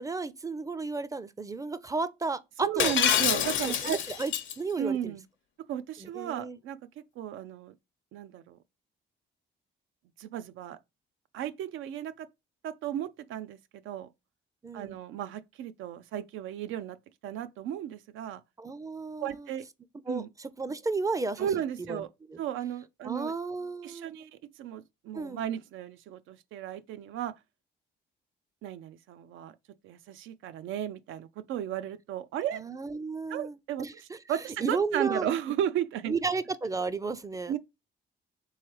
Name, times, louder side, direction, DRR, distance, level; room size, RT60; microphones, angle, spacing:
voice 1, 0.0-3.0 3.6-5.1 6.0-6.6 14.6-15.0 18.6-19.5 20.1-22.0 22.3-22.4 23.0-24.3 25.1-25.4 32.5-34.2 34.6-35.3 36.1-37.6, right 4 dB, 15° right, 0.4 m, -33 dB
voice 2, 2.6-4.0 4.8-5.2 5.7-7.7 8.1-8.6 10.2-10.8 11.3-12.3 12.6-13.6 13.8-14.1 14.7-17.0 17.2-18.4 19.2-19.6 20.1-20.3 21.4-22.1 22.4-23.3 23.8-24.3 24.6-27.3 28.6-29.5 29.8-32.6 33.3-33.9 34.3-36.1 37.5-37.6, right 10 dB, 85° right, 0.4 m, -34 dB
Shatter, 2.8-4.5, left 9 dB, 75° left, 0.7 m, -26 dB
3.5 x 3.2 x 4.5 m
cardioid pair, 90°, 20 cm